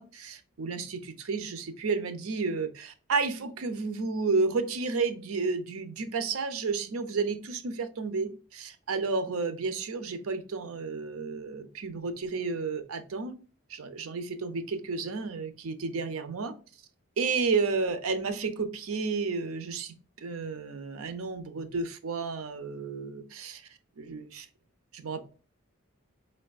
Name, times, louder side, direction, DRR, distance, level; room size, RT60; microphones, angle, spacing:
voice 1, 0.0-13.3 13.7-16.5 17.2-23.6 24.0-24.5 24.9-25.2, right 4 dB, 80° right, 0.5 m, -31 dB
4.6 x 3.3 x 2.3 m
head